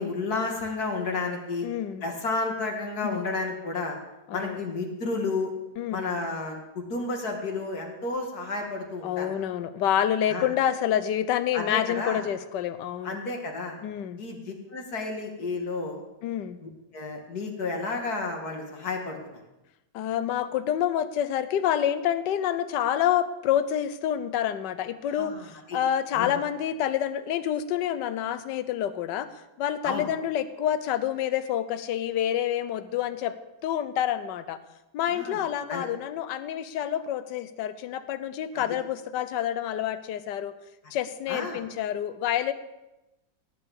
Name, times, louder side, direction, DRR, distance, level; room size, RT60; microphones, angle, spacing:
voice 1, 0.0-1.7 2.0-4.0 4.3-5.5 5.9-9.3 10.3-10.5 11.5-12.2 13.0-13.8 14.2-16.0 16.6-19.4 25.2-25.8 26.1-26.3 29.8-30.1 35.1-35.4 35.7-35.8 38.6-38.7 41.3-41.6, left 3 dB, 55° left, 2 dB, 2.5 m, -31 dB
voice 2, 1.6-2.0 3.0-3.2 4.3-4.6 5.8-6.1 9.0-13.2 13.8-14.2 16.2-16.6 19.9-29.3 29.6-33.3 33.6-34.6 34.9-40.5 40.9-42.5, left 10 dB, 70° left, 12 dB, 1.4 m, -28 dB
18.0 x 6.0 x 8.1 m, 0.97 s
omnidirectional pair, 2.0 m